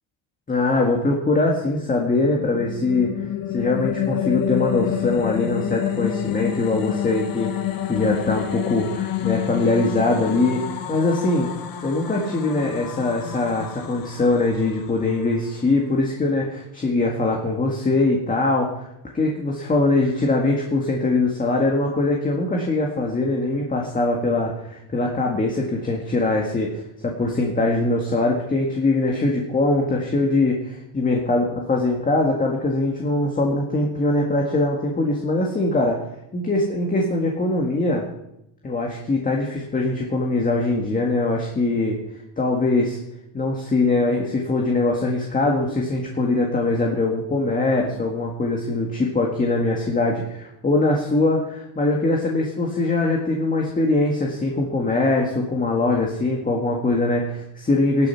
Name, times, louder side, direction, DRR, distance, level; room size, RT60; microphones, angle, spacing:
voice 1, 0.5-3.1 3.5-7.5 7.9-11.5 11.8-18.9 19.1-36.0 36.3-38.1 38.6-42.0 42.4-43.0 43.3-58.1, left 2 dB, 20° left, 0 dB, 1.9 m, -22 dB
sound 1, 2.2-15.4, left 12 dB, 50° left, 1.7 m, -28 dB
14.0 x 11.5 x 5.9 m, 0.81 s
cardioid pair, 145°, 45 cm